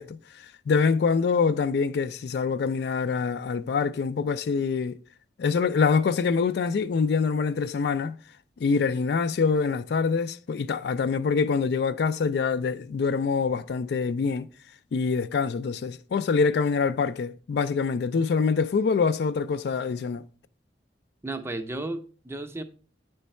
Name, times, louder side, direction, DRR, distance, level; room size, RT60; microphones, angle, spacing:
voice 1, 0.0-5.0 5.4-8.2 8.6-14.5 14.9-20.2, left 5 dB, 65° left, 0.3 m, -25 dB
voice 2, 21.2-22.6, right 2 dB, 15° right, 0.5 m, -33 dB
9.1 x 3.2 x 4.2 m
head